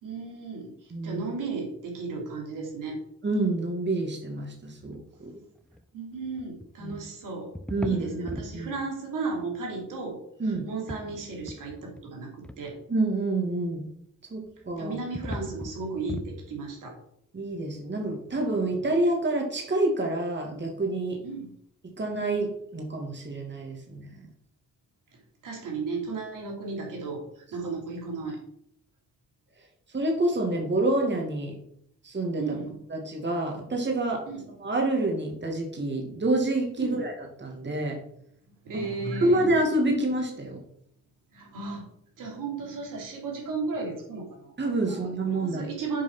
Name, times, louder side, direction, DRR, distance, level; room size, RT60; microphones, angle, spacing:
voice 1, 0.0-0.7 1.0-3.0 5.9-7.5 7.8-10.2 10.5-12.7 14.8-16.9 21.2-21.5 25.4-27.2 27.5-28.4 32.4-32.7 34.3-34.4 36.8-37.0 38.6-39.5 41.3-41.8 42.2-44.5 44.9-45.0 45.3-46.0, right 4 dB, 80° right, 0 dB, 3.1 m, -34 dB
voice 2, 0.9-1.2 3.2-5.3 6.8-6.9 7.7-8.7 10.4-10.7 12.9-13.8 14.3-14.9 17.3-21.2 22.0-24.1 29.9-31.5 32.0-32.6 32.9-38.0 39.1-40.6 44.6-45.6, right 2 dB, 35° right, 2 dB, 2.5 m, -28 dB
sound 1, 4.8-5.0 5.6-5.8 6.2-7.0 7.5-8.6 9.3-9.4 10.5-11.0 11.3-12.0 12.4-12.6 14.4-16.3, left 1 dB, 5° left, 0.8 m, -39 dB
7.8 x 4.8 x 6.2 m, 0.69 s
cardioid pair, 70°, 32 cm